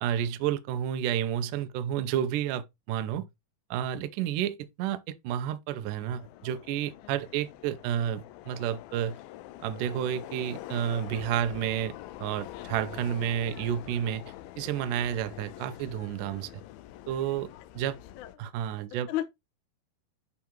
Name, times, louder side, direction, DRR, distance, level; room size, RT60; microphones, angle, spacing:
voice 1, 0.0-3.3 3.7-9.2 9.6-11.9 12.2-14.2 14.6-16.6 17.1-17.5 17.7-18.0 18.4-19.1, right 10 dB, 85° right, 1.8 m, -30 dB
Subway metro underground, 6.0-18.4, left 14 dB, 90° left, 2.0 m, -45 dB
voice 2, 12.5-13.2 18.2-18.5 19.1-19.2, left 14 dB, 65° left, 2.1 m, -36 dB
11.0 x 3.7 x 4.5 m
omnidirectional pair, 4.9 m